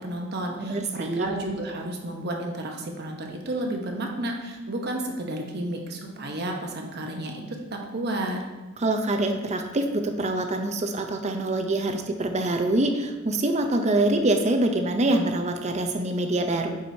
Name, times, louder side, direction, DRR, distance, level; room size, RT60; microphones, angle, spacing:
voice 1, 0.0-8.4, right 1 dB, 55° right, 2 dB, 0.9 m, -32 dB
voice 2, 0.6-1.3 8.8-16.8, right 2 dB, 35° right, 5 dB, 0.6 m, -25 dB
8.7 x 4.8 x 2.7 m, 1.2 s
head